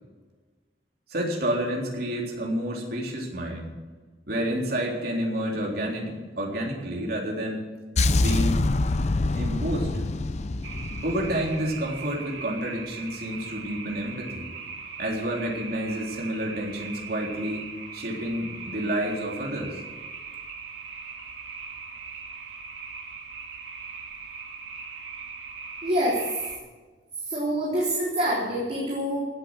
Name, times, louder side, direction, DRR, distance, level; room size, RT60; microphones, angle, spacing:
voice 1, 1.1-3.7 4.3-7.7 8.2-8.8 9.4-9.9 11.0-14.5 15.0-19.8, right 1 dB, 60° right, -1 dB, 3.7 m, -29 dB
sound 1, 8.0-12.0, left 2 dB, 40° left, 0.6 m, -25 dB
sound 2, 10.6-26.6, right 5 dB, 80° right, 2.6 m, -40 dB
voice 2, 25.8-26.2 27.2-29.2, equal, 40° right, -6 dB, 3.6 m, -26 dB
15.5 x 9.0 x 7.6 m, 1.3 s
head